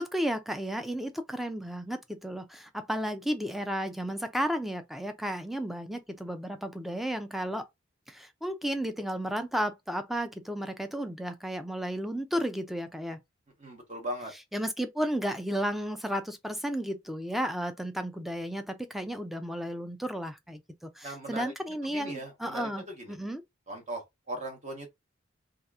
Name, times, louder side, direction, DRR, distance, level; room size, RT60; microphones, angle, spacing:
voice 1, 0.0-7.7 8.1-13.2 14.5-23.4, equal, ahead, 0.4 m, -33 dB
voice 2, 13.6-14.3 21.0-21.5 21.9-22.7 23.0-23.2 23.7-24.9, right 1 dB, 35° right, 0.9 m, -38 dB
2.8 x 2.4 x 3.4 m
head